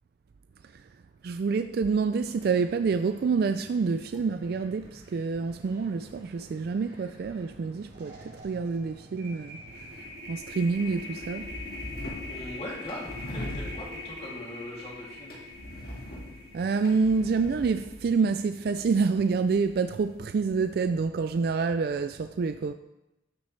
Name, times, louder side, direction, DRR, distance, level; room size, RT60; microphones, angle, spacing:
voice 1, 1.2-11.5 16.5-22.7, right 4 dB, 55° right, 0.3 m, -27 dB
sound 1, 2.2-10.2, equal, 30° right, 3.0 m, -54 dB
sound 2, 7.4-7.6 7.9-18.2, left 2 dB, 70° right, 3.4 m, -43 dB
sound 3, 9.7-20.8, left 1 dB, 55° left, 1.9 m, -43 dB
voice 2, 12.2-15.4 16.1-16.2, left 1 dB, 30° left, 2.7 m, -40 dB
13.0 x 7.1 x 3.3 m
head